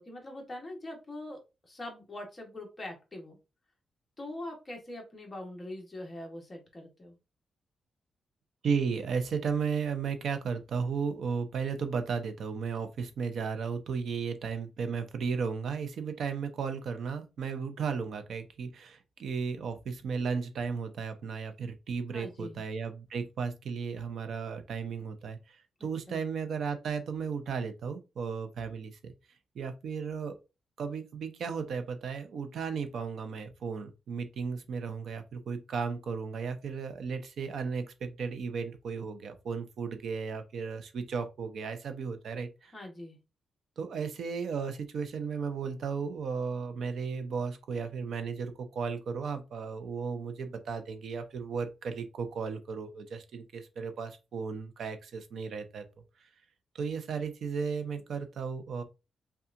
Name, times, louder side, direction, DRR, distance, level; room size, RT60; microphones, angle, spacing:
voice 1, 0.0-3.4 4.2-7.2 22.1-22.6 26.1-26.2 42.7-43.2, left 1 dB, 20° left, 1.1 m, -43 dB
voice 2, 8.6-29.1 29.5-30.4 30.8-42.7 43.8-55.8 56.2-56.3 56.7-58.8, right 5 dB, 65° right, 0.6 m, -35 dB
5.5 x 2.4 x 2.5 m
wide cardioid pair, 165°, 0 cm